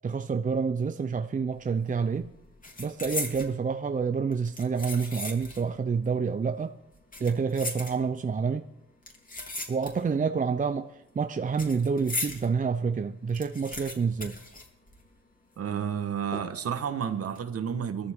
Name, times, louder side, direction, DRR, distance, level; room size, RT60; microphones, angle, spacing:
voice 1, 0.0-2.3 2.8-6.8 7.2-8.7 9.7-14.4, right 5 dB, 25° right, 0.7 m, -28 dB
sound 1, 1.6-1.9 2.1-3.5 4.3-5.7 6.0-6.1 6.9-8.3 9.0-10.2 10.5-12.5 12.9-13.0 13.1-15.3 15.5-15.6 16.3-16.7 17.2-17.4, left 2 dB, 25° left, 3.2 m, -37 dB
voice 2, 15.6-18.1, right 8 dB, 50° right, 1.5 m, -31 dB
21.5 x 14.0 x 3.7 m
cardioid pair, 90°, 30 cm